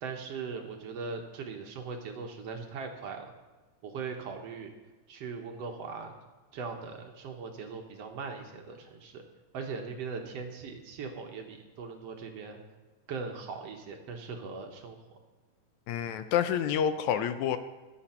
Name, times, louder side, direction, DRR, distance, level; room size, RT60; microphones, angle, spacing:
voice 1, 0.0-3.3 3.8-4.7 5.1-6.2 6.5-9.2 9.5-12.6 13.1-15.2, right 5 dB, 60° right, 4 dB, 1.9 m, -40 dB
voice 2, 15.9-17.6, left 9 dB, 75° left, 10 dB, 1.8 m, -28 dB
21.5 x 8.4 x 4.4 m, 1.3 s
omnidirectional pair, 3.8 m